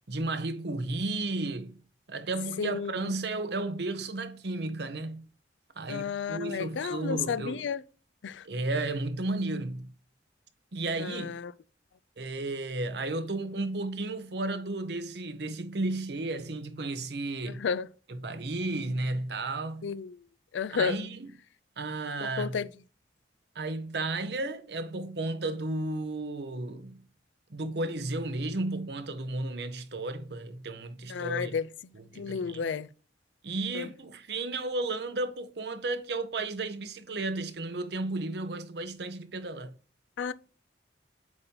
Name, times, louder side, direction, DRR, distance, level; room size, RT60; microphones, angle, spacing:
voice 1, 0.1-1.8 2.1-5.3 5.8-7.6 8.4-9.9 10.7-11.4 12.2-17.6 18.1-19.9 20.7-21.3 21.8-22.6 23.5-27.1 27.5-31.6 31.9-32.6 33.4-39.7, right 2 dB, 65° right, 0.8 m, -33 dB
voice 2, 2.6-2.9 5.9-7.8 8.2-8.5 11.0-11.5 17.5-17.9 19.8-20.2 20.5-21.0 22.2-22.7 31.1-31.7 32.2-32.9 33.7-33.9 40.2-40.3, left 6 dB, 90° left, 0.4 m, -32 dB
7.9 x 2.8 x 5.3 m
head